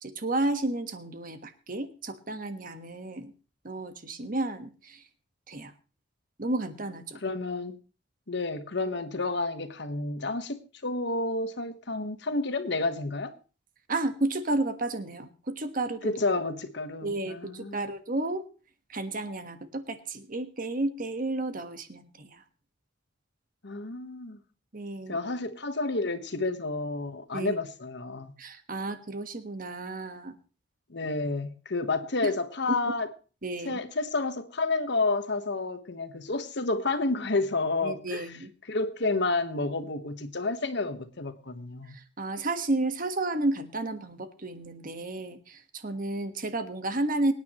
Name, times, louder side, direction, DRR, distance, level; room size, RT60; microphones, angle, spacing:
voice 1, 0.0-3.3 3.6-5.0 5.5-5.7 6.4-7.2 13.9-16.1 17.0-18.4 18.9-22.4 24.7-25.2 27.3-27.6 28.4-30.3 32.2-32.3 33.4-33.8 37.8-38.5 41.9-47.3, right 2 dB, 45° right, 1.4 m, -32 dB
voice 2, 7.2-7.8 8.3-13.3 16.0-17.8 23.6-24.4 25.1-28.3 30.9-33.1 33.6-38.3 38.7-42.0, left 3 dB, 60° left, 1.3 m, -30 dB
24.0 x 9.6 x 3.1 m
head